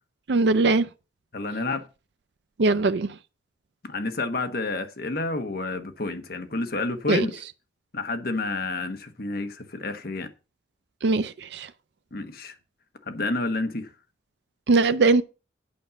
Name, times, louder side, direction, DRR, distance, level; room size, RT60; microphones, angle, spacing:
voice 1, 0.3-0.9 2.6-3.1 7.1-7.3 11.0-11.7 14.7-15.2, right 3 dB, 65° right, 0.5 m, -20 dB
voice 2, 1.3-1.8 3.8-7.4 7.9-10.3 12.1-12.5 13.1-13.9, left 2 dB, 55° left, 1.2 m, -29 dB
8.6 x 5.4 x 6.9 m
head